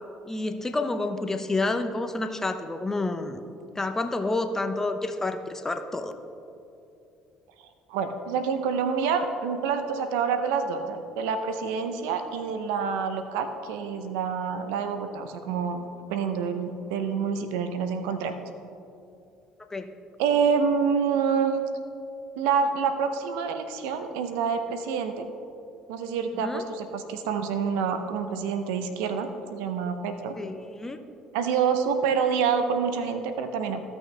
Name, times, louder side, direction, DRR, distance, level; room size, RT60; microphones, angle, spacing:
voice 1, 0.2-3.4 3.7-6.1 19.7-19.9 26.4-26.6 30.4-31.0, left 2 dB, 20° left, 7 dB, 0.8 m, -29 dB
voice 2, 7.6-18.3 20.2-21.6 22.4-25.2 25.9-30.4 31.3-33.8, right 6 dB, 80° right, 8 dB, 0.7 m, -27 dB
15.5 x 6.1 x 3.3 m, 2.7 s
supercardioid pair, 70°, 2 cm